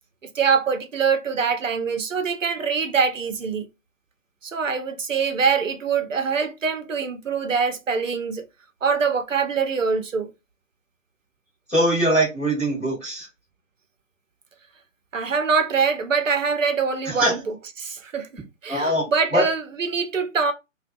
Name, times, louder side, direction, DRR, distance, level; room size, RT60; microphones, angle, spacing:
voice 1, 0.3-3.7 4.4-8.4 8.8-10.3 15.1-17.4 17.8-18.3 18.6-20.5, right 5 dB, 75° right, 0.7 m, -24 dB
voice 2, 11.7-13.3 17.0-17.4 18.7-19.4, right 1 dB, 5° left, 0.6 m, -22 dB
2.5 x 2.2 x 2.7 m
figure-of-eight pair, 130°, 39 cm